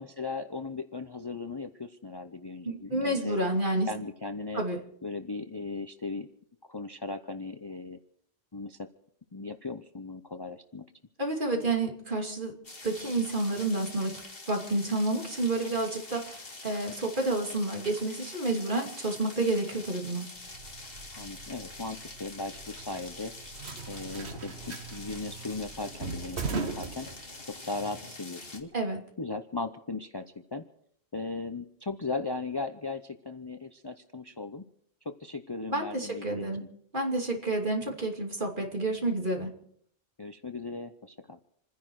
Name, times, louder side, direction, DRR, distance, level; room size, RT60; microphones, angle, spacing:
voice 1, 0.0-3.4 3.9-4.6 5.0-6.3 6.7-8.0 8.5-8.9 9.3-10.9 21.1-23.3 23.9-27.1 27.5-28.7 29.2-30.6 31.1-34.6 35.0-36.7 37.9-38.0 40.2-41.4, left 3 dB, 25° left, 8 dB, 0.6 m, -37 dB
voice 2, 2.6-3.9 4.5-4.8 11.2-12.6 12.8-14.2 14.5-20.3 28.7-29.0 35.7-36.6 36.9-39.5, right 2 dB, 45° right, 1 dB, 2.9 m, -29 dB
sound 1, 12.6-28.6, left 2 dB, 55° left, 2.3 m, -45 dB
sound 2, 20.4-27.7, right 4 dB, 70° right, 1.5 m, -40 dB
28.0 x 10.5 x 4.7 m, 0.67 s
omnidirectional pair, 1.1 m